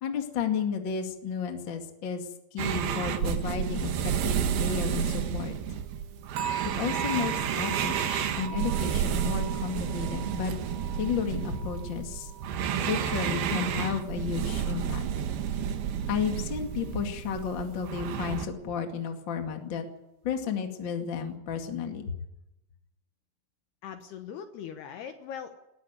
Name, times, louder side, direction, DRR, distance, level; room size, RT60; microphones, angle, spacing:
voice 1, 0.0-5.6 6.6-10.5 10.9-12.3 12.8-15.1 16.1-19.8 20.2-22.2, left 7 dB, 45° left, 4 dB, 1.5 m, -32 dB
sound 1, 2.6-18.5, right 8 dB, 65° right, 2.8 m, -31 dB
sound 2, 6.4-13.4 13.7-14.1 14.6-14.7, right 9 dB, 80° right, 4.8 m, -40 dB
voice 2, 23.8-25.5, left 8 dB, 70° left, 7 dB, 2.7 m, -40 dB
19.5 x 14.0 x 9.5 m, 0.88 s
omnidirectional pair, 5.7 m